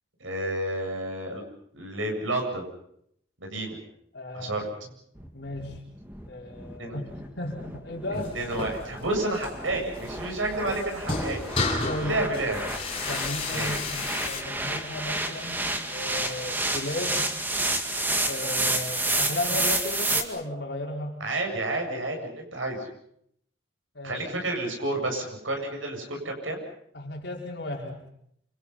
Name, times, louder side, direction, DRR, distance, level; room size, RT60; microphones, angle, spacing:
voice 1, 0.2-1.4 1.7-2.7 3.4-3.8 4.3-4.7 6.8-7.0 8.1-11.5 11.9-12.6 13.5-13.7 21.2-22.9 24.0-26.6, right 2 dB, 75° right, 2 dB, 8.0 m, -30 dB
voice 2, 4.1-4.6 5.3-5.8 6.3-8.3 11.8-12.2 13.1-17.2 18.2-21.2 23.9-24.3 26.9-28.0, left 1 dB, 55° left, -1 dB, 4.7 m, -35 dB
sound 1, 5.2-20.2, right 2 dB, 10° right, 2.1 m, -30 dB
sound 2, 8.1-14.4, left 3 dB, 25° left, 6.4 m, -33 dB
28.5 x 26.5 x 5.8 m, 0.71 s
head